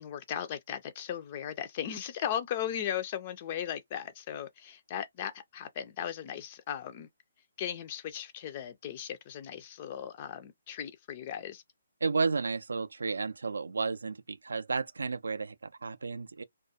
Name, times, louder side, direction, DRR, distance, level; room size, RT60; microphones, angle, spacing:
voice 1, 0.0-7.1 7.6-11.6, left 10 dB, 35° left, 0.3 m, -37 dB
voice 2, 12.0-16.4, right 4 dB, 70° right, 0.3 m, -32 dB
2.3 x 2.3 x 2.7 m
figure-of-eight pair, 135°, 0 cm